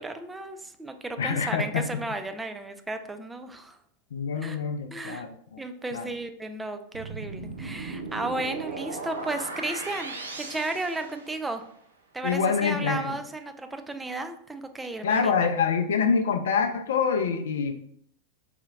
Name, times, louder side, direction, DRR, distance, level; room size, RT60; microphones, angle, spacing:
voice 1, 0.0-3.8 4.4-4.6 4.9-5.2 5.6-11.6 12.1-15.5, right 2 dB, 10° right, 7 dB, 0.3 m, -34 dB
voice 2, 1.2-2.0 4.1-5.3 5.5-5.6 5.9-6.0 12.2-13.2 15.0-17.7, left 6 dB, 60° left, 7 dB, 0.4 m, -26 dB
sound 1, 6.9-11.7, right 3 dB, 70° right, 0.5 m, -37 dB
4.2 x 2.8 x 2.4 m, 0.64 s
figure-of-eight pair, 90°, 0 cm